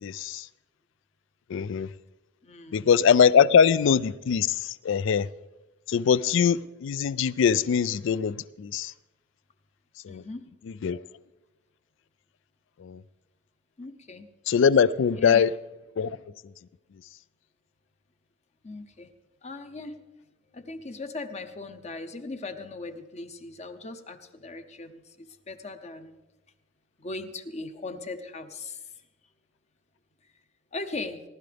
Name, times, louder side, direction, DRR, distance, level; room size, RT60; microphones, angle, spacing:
voice 1, 0.0-0.4 1.5-1.9 2.7-4.5 4.8-5.3 5.9-8.9 10.1-10.2 10.8-11.0 12.8-13.0 14.5-15.5 16.0-16.1, left 7 dB, 65° left, 0.4 m, -22 dB
voice 2, 2.4-2.9 3.5-3.6 10.1-10.5 13.8-14.3 15.2-15.5 18.6-19.1 19.4-20.0 20.5-26.2 27.0-28.9 30.7-31.2, left 3 dB, 35° left, 0.8 m, -39 dB
19.0 x 12.0 x 3.4 m
head